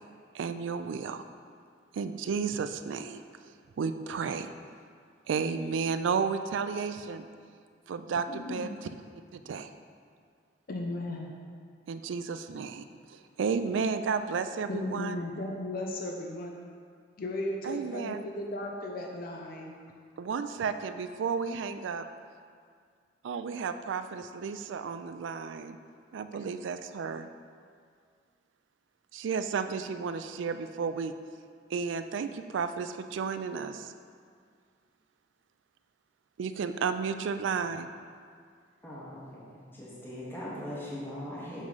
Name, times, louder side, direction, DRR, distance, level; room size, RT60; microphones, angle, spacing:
voice 1, 0.3-1.2 1.9-3.2 3.8-4.5 5.3-7.2 7.9-8.9 9.3-9.7 11.9-15.2 17.6-18.2 20.2-22.0 23.2-25.8 26.1-27.3 29.1-31.1 31.7-33.9 36.4-37.9, right 5 dB, 75° right, 10 dB, 0.3 m, -32 dB
voice 2, 8.1-8.7 10.7-11.3 14.7-16.6 17.2-19.8, left 1 dB, 50° left, 1 dB, 0.5 m, -36 dB
voice 3, 38.8-39.4 39.7-41.6, left 1 dB, 10° left, -8 dB, 1.1 m, -40 dB
7.2 x 3.1 x 5.4 m, 2.1 s
head